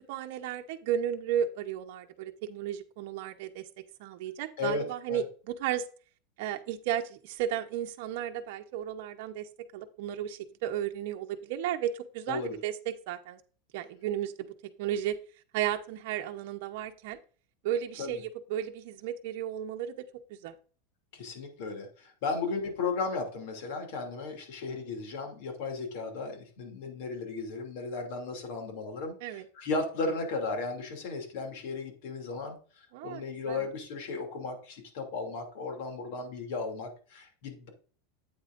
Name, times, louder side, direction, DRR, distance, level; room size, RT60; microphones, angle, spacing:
voice 1, 0.1-3.7 4.0-5.9 6.4-13.4 13.7-14.5 14.8-15.1 15.5-17.2 17.6-20.5 29.2-29.5 32.9-33.7, right 10 dB, 60° right, 5 dB, 0.8 m, -34 dB
voice 2, 4.6-5.2 12.3-12.6 18.0-18.1 21.1-37.7, left 3 dB, 60° left, 3 dB, 2.7 m, -35 dB
8.8 x 8.7 x 2.6 m, 0.40 s
supercardioid pair, 155°, 0 cm